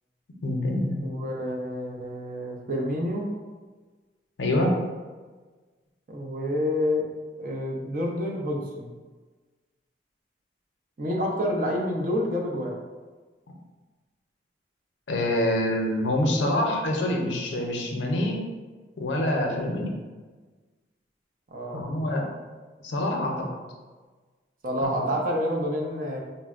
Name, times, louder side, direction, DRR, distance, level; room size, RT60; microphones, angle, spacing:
voice 1, 0.4-1.0 4.4-4.8 15.1-18.5 19.0-19.9 21.7-22.3 22.8-23.5 24.8-24.9, left 1 dB, 85° left, 1 dB, 0.5 m, -26 dB
voice 2, 1.0-3.3 6.1-7.1 7.4-8.9 11.0-12.7 21.5-21.8 24.6-26.2, equal, 50° right, 0 dB, 0.5 m, -28 dB
3.7 x 2.1 x 2.4 m, 1.3 s
head